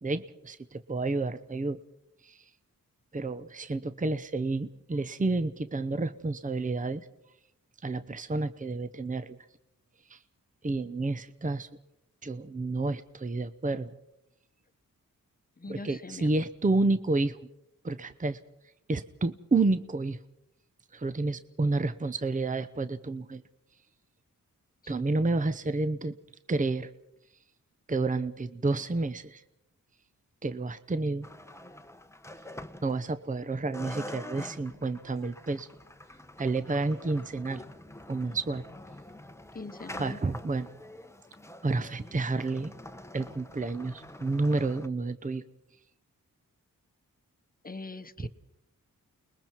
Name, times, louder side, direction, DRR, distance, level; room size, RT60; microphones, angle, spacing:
voice 1, 0.0-1.8 2.2-2.4 3.1-7.1 7.8-9.4 10.1-10.2 10.6-11.7 12.2-14.0 15.7-17.4 17.8-18.4 18.9-20.2 20.9-23.4 24.9-26.1 26.5-26.9 27.9-29.4 30.4-31.3 32.8-35.7 36.4-37.6 38.1-38.6 40.0-40.7 41.6-42.7 43.1-45.4 48.2-48.3, right 3 dB, 25° right, 12 dB, 0.8 m, -30 dB
voice 2, 15.6-16.4 24.8-24.9 39.5-40.2 47.6-48.3, left 3 dB, 25° left, 12 dB, 1.1 m, -42 dB
sound 1, 31.2-33.4 33.7-44.9, left 1 dB, 10° left, 1.0 m, -46 dB
29.5 x 21.0 x 4.6 m, 0.84 s
cardioid pair, 70°, 34 cm